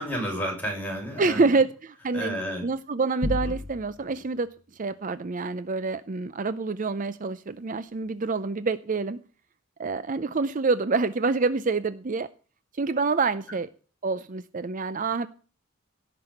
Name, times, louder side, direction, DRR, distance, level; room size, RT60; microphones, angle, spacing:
voice 1, 0.0-1.5 2.1-2.7 3.4-3.6, equal, 10° left, 0 dB, 6.7 m, -31 dB
voice 2, 1.2-9.2 9.8-12.3 12.8-13.7 14.0-15.3, right 4 dB, 40° right, 14 dB, 0.5 m, -27 dB
sound 1, 3.2-4.2, left 2 dB, 20° right, 5.2 m, -31 dB
17.0 x 6.1 x 7.8 m, 0.39 s
head